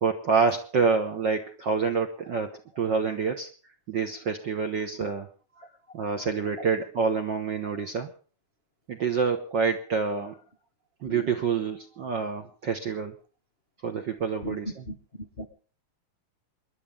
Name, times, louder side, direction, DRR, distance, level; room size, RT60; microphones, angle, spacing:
voice 1, 0.0-3.5 3.9-5.3 5.9-8.1 8.9-10.4 11.0-13.1 13.8-14.9, right 5 dB, 60° right, 5 dB, 1.2 m, -27 dB
voice 2, 5.0-5.1 11.0-11.3 14.4-14.6 14.9-15.0 15.4-15.5, equal, 50° left, 7 dB, 0.7 m, -36 dB
27.0 x 11.0 x 3.6 m, 0.38 s
omnidirectional pair, 3.5 m